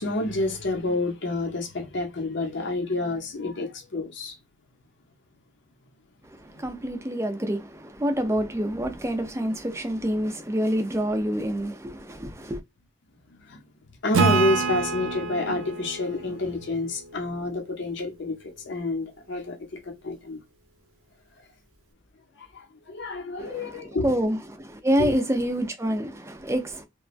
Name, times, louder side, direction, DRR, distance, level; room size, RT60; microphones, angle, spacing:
voice 1, 0.0-4.4 6.5-7.0 13.3-13.6 14.0-19.6 19.8-20.4 22.3-24.1 25.0-25.1, left 2 dB, 60° left, 0.7 m, -29 dB
voice 2, 6.2-12.6 23.4-26.8, equal, 15° right, 0.5 m, -27 dB
Acoustic guitar / Strum, 14.1-17.6, right 5 dB, 90° right, 0.6 m, -27 dB
3.0 x 2.2 x 2.4 m
head